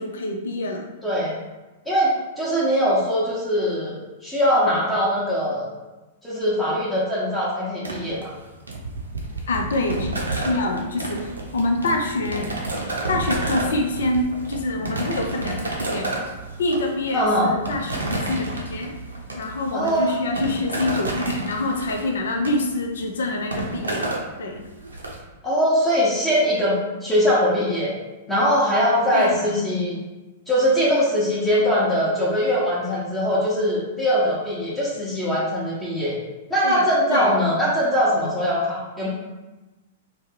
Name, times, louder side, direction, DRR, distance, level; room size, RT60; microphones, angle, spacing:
voice 1, 0.0-0.8 9.5-12.6 13.1-16.1 16.6-19.0 19.3-24.1 24.4-24.6 29.1-29.4 31.7-31.8 36.6-37.3, left 2 dB, 70° left, 2 dB, 0.5 m, -26 dB
voice 2, 1.0-1.3 1.9-5.7 6.2-8.3 17.1-17.5 19.7-20.1 25.4-27.9 28.3-30.0 30.5-36.1 36.5-39.1, equal, 10° left, -7 dB, 0.9 m, -21 dB
sound 1, 7.8-25.2, right 2 dB, 90° right, 0.6 m, -31 dB
3.3 x 2.2 x 3.2 m, 1.1 s
hypercardioid pair, 105°, 0 cm